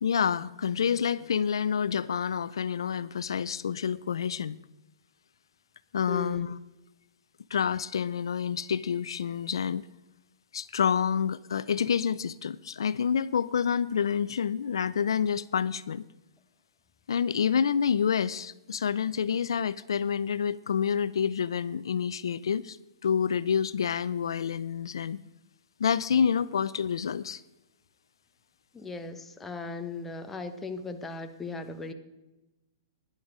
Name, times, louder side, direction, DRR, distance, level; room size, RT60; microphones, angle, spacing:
voice 1, 0.0-4.6 5.9-6.5 7.5-9.8 10.5-16.0 17.1-22.8 23.0-25.2 25.8-27.4, left 7 dB, 80° left, 17 dB, 0.4 m, -28 dB
voice 2, 6.1-6.6 28.7-31.9, left 3 dB, 10° left, 7 dB, 1.0 m, -38 dB
11.5 x 10.5 x 4.9 m, 1.0 s
hypercardioid pair, 135°, 2 cm